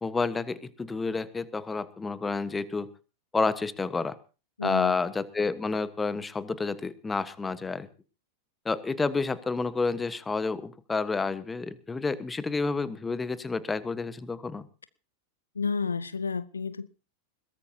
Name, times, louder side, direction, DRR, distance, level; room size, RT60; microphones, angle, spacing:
voice 1, 0.0-2.9 3.3-4.2 4.6-7.9 8.6-14.7, left 4 dB, 10° left, 1.3 m, -30 dB
voice 2, 4.6-5.0 15.5-16.9, left 5 dB, 75° left, 0.7 m, -31 dB
21.5 x 18.5 x 2.8 m
figure-of-eight pair, 90°, 0 cm